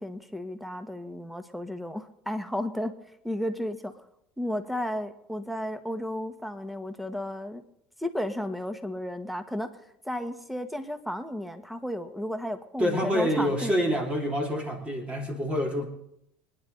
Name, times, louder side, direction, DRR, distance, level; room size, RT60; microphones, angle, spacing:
voice 1, 0.0-2.9 3.2-3.9 4.4-7.6 8.0-9.7 10.0-13.7, left 1 dB, ahead, 8 dB, 1.6 m, -33 dB
voice 2, 12.8-15.9, equal, 20° right, 2 dB, 2.9 m, -27 dB
26.0 x 10.0 x 4.0 m, 0.81 s
hypercardioid pair, 90°, 5 cm